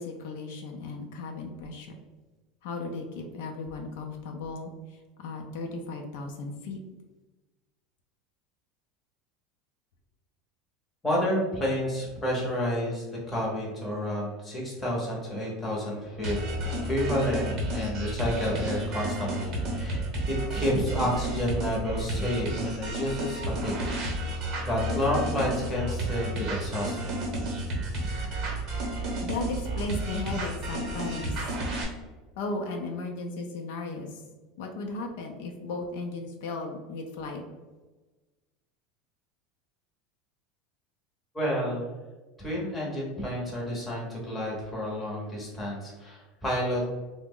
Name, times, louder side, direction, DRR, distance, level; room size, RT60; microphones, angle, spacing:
voice 1, 0.0-1.9 2.6-6.8 29.2-31.4 32.4-34.2 34.6-37.4, left 3 dB, 65° left, 2 dB, 0.4 m, -36 dB
voice 2, 11.0-16.4 16.8-23.8 24.7-27.2 41.3-41.8 42.4-46.8, equal, 10° left, -4 dB, 0.7 m, -30 dB
sound 1, 16.2-31.8, right 1 dB, 30° right, 0.8 m, -31 dB
3.4 x 2.0 x 3.6 m, 1.2 s
supercardioid pair, 180°, 0 cm